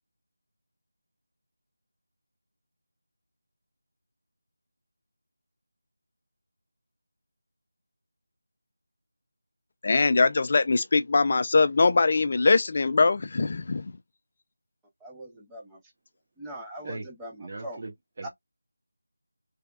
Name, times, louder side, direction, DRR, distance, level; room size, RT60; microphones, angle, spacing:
voice 1, 9.8-13.9, left 3 dB, 35° left, 0.4 m, -22 dB
voice 2, 15.0-15.8 16.4-17.8 18.2-18.3, right 1 dB, 5° right, 0.7 m, -41 dB
voice 3, 17.4-18.3, right 3 dB, 30° right, 1.1 m, -39 dB
3.4 x 3.4 x 2.3 m
figure-of-eight pair, 175°, 0 cm